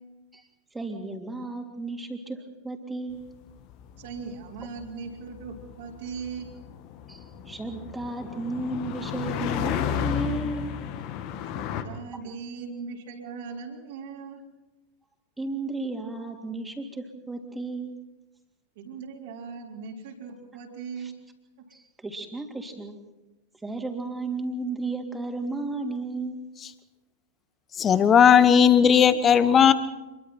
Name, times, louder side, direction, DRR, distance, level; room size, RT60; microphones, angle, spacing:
voice 1, 0.7-3.2 7.1-10.7 15.4-17.9 21.0-21.1 21.7-23.0 23.6-26.4, right 2 dB, 10° right, 3 dB, 3.2 m, -33 dB
sound 1, 3.3-11.8, left 9 dB, 45° left, 1.8 m, -33 dB
voice 2, 4.0-6.5 11.5-14.4 18.8-21.2, right 5 dB, 55° right, -1 dB, 3.8 m, -39 dB
voice 3, 27.8-29.7, left 8 dB, 25° left, 14 dB, 1.3 m, -17 dB
27.5 x 22.5 x 4.5 m, 1.1 s
figure-of-eight pair, 90°, 0 cm